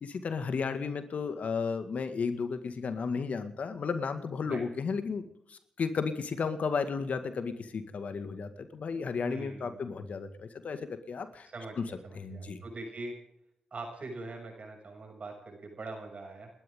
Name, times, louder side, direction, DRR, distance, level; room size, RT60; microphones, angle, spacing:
voice 1, 0.0-5.2 5.5-11.5 11.8-11.9 12.1-12.6, left 5 dB, 65° left, 9 dB, 2.0 m, -33 dB
voice 2, 9.2-9.8 11.5-13.2 13.7-16.5, right 2 dB, 55° right, 3 dB, 7.1 m, -42 dB
29.5 x 12.5 x 3.8 m, 0.77 s
supercardioid pair, 45°, 3 cm